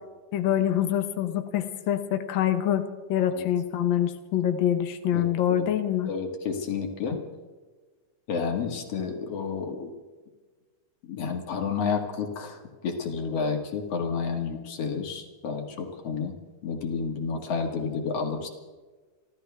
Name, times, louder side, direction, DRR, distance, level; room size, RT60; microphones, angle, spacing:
voice 1, 0.3-6.1, left 10 dB, 75° left, 7 dB, 1.1 m, -25 dB
voice 2, 5.1-5.7 6.1-7.2 8.3-9.9 11.1-16.4 16.6-18.5, left 5 dB, 55° left, 3 dB, 2.7 m, -30 dB
29.0 x 13.0 x 3.5 m, 1.3 s
omnidirectional pair, 3.7 m